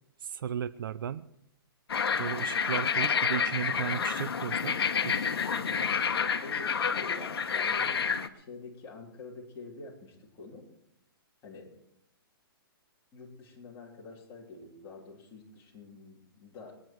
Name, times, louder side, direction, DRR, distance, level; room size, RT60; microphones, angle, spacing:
voice 1, 0.2-1.3 2.2-5.4, right 9 dB, 60° right, 16 dB, 0.6 m, -35 dB
sound 1, 1.9-8.3, left 6 dB, 80° left, 1.2 m, -29 dB
voice 2, 5.5-5.9 6.4-8.0 8.3-10.7 11.4-11.7 13.1-16.8, left 3 dB, 20° left, -3 dB, 3.4 m, -47 dB
21.5 x 9.9 x 4.6 m, 0.78 s
hypercardioid pair, 155°, 13 cm